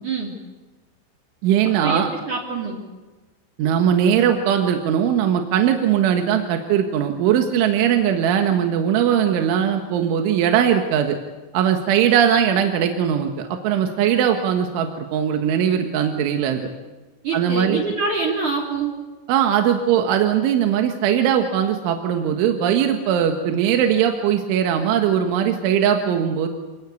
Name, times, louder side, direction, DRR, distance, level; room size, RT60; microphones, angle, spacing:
voice 1, 0.0-0.3 1.8-2.8 17.2-18.9, right 4 dB, 45° right, -3 dB, 4.2 m, -25 dB
voice 2, 1.4-2.1 3.6-11.2 11.5-16.7 17.3-17.8 19.3-26.5, right 9 dB, 80° right, 5 dB, 3.9 m, -20 dB
27.5 x 19.5 x 8.4 m, 1.2 s
omnidirectional pair, 5.5 m